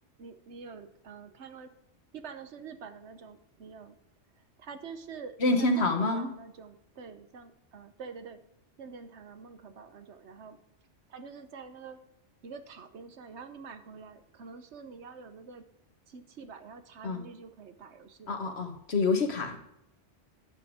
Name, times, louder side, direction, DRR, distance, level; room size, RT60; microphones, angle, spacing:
voice 1, 0.2-1.7 2.1-4.0 4.6-8.4 8.8-10.6 11.1-12.0 12.4-15.6 16.1-18.4, right 5 dB, 70° right, 9 dB, 1.2 m, -46 dB
voice 2, 5.4-6.3 17.0-17.2 18.3-19.6, left 2 dB, 60° left, 6 dB, 1.6 m, -27 dB
10.5 x 7.4 x 4.9 m, 0.83 s
omnidirectional pair, 1.2 m